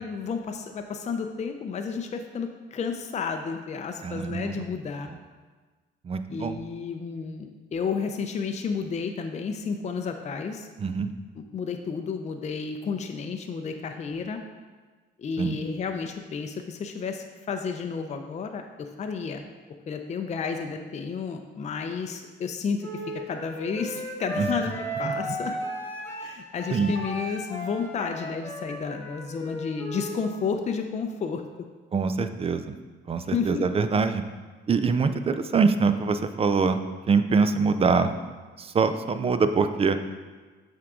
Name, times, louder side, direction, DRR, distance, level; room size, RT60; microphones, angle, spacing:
voice 1, 0.0-5.1 6.3-10.7 11.4-14.4 15.2-19.4 19.9-22.9 23.3-24.7 25.0-25.5 26.2-31.4 33.3-33.6, left 5 dB, 35° left, 5 dB, 0.5 m, -31 dB
voice 2, 4.0-4.6 5.1-5.2 6.0-6.6 10.8-11.1 15.4-15.6 24.4-24.5 25.0-25.1 26.7-27.0 31.9-32.8 33.1-34.2 34.7-36.8 37.1-38.1 38.6-40.0, right 5 dB, 30° right, 10 dB, 0.4 m, -24 dB
Wind instrument woodwind instrument, 22.8-30.3, equal, 10° left, 1.7 m, -35 dB
7.5 x 3.7 x 3.6 m, 1.4 s
cardioid pair, 90°, 20 cm